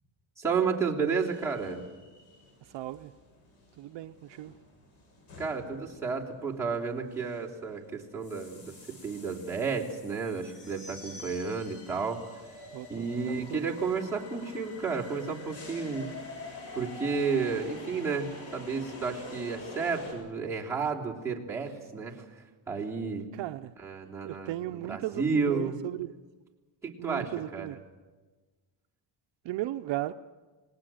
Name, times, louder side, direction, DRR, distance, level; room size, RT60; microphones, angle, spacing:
voice 1, 0.4-1.8 5.4-12.4 12.9-16.1 16.7-23.3 23.8-25.8 26.8-27.8, right 5 dB, 5° right, -5 dB, 3.3 m, -32 dB
sound 1, 1.1-20.1, left 2 dB, 70° left, 7.1 m, -47 dB
voice 2, 2.6-3.1 3.8-4.5 12.7-13.7 23.3-23.7 24.2-26.2 27.0-27.8 29.4-30.1, right 15 dB, 60° right, 8 dB, 0.7 m, -36 dB
28.0 x 19.0 x 7.7 m, 1.3 s
cardioid pair, 160°, 49 cm